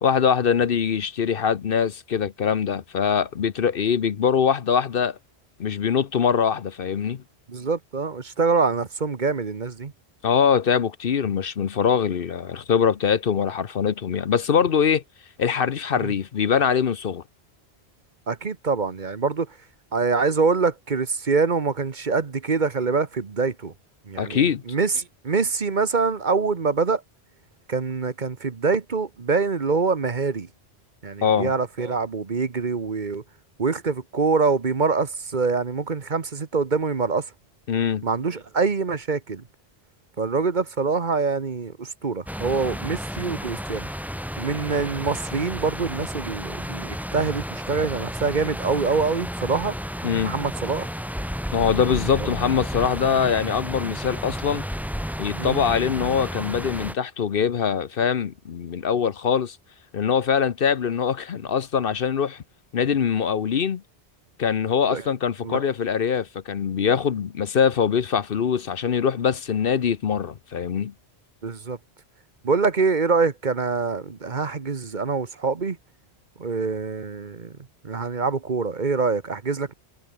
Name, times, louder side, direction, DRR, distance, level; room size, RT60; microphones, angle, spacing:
voice 1, 0.0-5.2 5.6-7.2 10.2-15.0 15.4-17.2 24.2-24.6 31.2-31.5 37.7-38.0 50.0-50.3 51.5-54.6 55.2-59.6 59.9-62.4 62.7-63.8 64.4-70.9, left 7 dB, 60° left, 1.0 m, -23 dB
voice 2, 7.5-9.9 16.0-16.1 18.3-19.6 19.9-23.7 24.1-27.0 27.7-30.5 31.0-33.2 33.6-37.3 38.0-39.4 40.2-43.9 44.4-49.8 50.2-50.9 52.2-52.3 55.4-55.6 64.9-65.0 65.4-65.6 71.4-71.8 72.4-75.8 76.4-77.6 77.8-79.7, right 4 dB, 45° right, 1.3 m, -25 dB
sound 1, 42.3-56.9, equal, ahead, 5.3 m, -32 dB
omnidirectional pair, 1.1 m